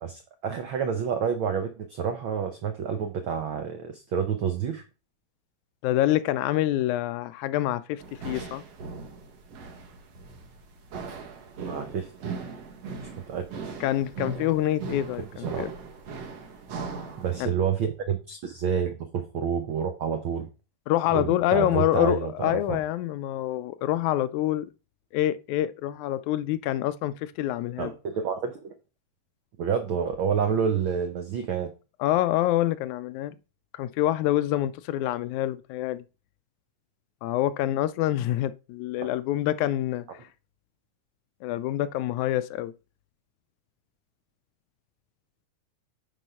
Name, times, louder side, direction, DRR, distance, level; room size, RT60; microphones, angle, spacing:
voice 1, 0.0-4.8 11.6-12.3 13.0-13.5 15.4-15.7 17.2-20.5 21.1-22.8 27.8-28.7 29.6-31.7, right 7 dB, 85° right, 1.1 m, -29 dB
voice 2, 5.8-8.6 13.8-15.7 17.4-17.5 20.9-24.7 25.1-27.9 32.0-33.4 33.7-36.0 37.2-40.1 41.4-42.7, left 13 dB, 80° left, 1.9 m, -26 dB
sound 1, 8.0-17.4, right 4 dB, 60° right, 2.4 m, -38 dB
9.1 x 3.8 x 5.5 m
omnidirectional pair, 3.5 m